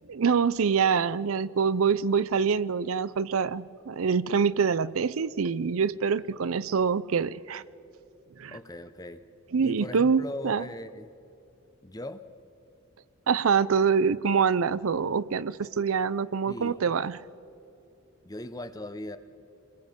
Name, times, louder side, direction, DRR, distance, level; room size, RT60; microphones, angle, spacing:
voice 1, 0.1-7.6 8.4-8.6 9.5-10.6 13.3-17.2, right 6 dB, 80° right, 0.5 m, -25 dB
voice 2, 8.5-9.2 9.6-11.1 11.8-12.3 16.5-16.8 18.2-19.2, left 1 dB, 15° left, 0.8 m, -39 dB
27.0 x 21.5 x 5.3 m
head